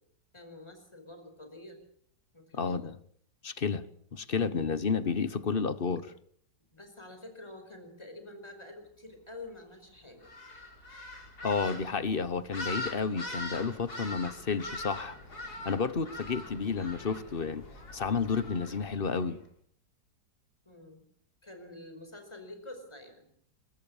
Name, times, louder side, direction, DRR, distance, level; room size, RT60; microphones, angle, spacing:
voice 1, 0.3-1.8 2.3-2.8 6.7-10.3 16.7-17.1 18.6-18.8 20.6-21.0 21.4-23.3, left 2 dB, 15° left, 4.9 m, -48 dB
voice 2, 2.5-3.0 3.4-3.9 4.1-6.1 11.4-15.2 15.6-17.6 17.9-19.4, left 5 dB, 35° left, 1.2 m, -31 dB
sound 1, 10.2-19.3, left 1 dB, 60° left, 4.9 m, -42 dB
22.5 x 22.5 x 7.2 m
omnidirectional pair, 1.9 m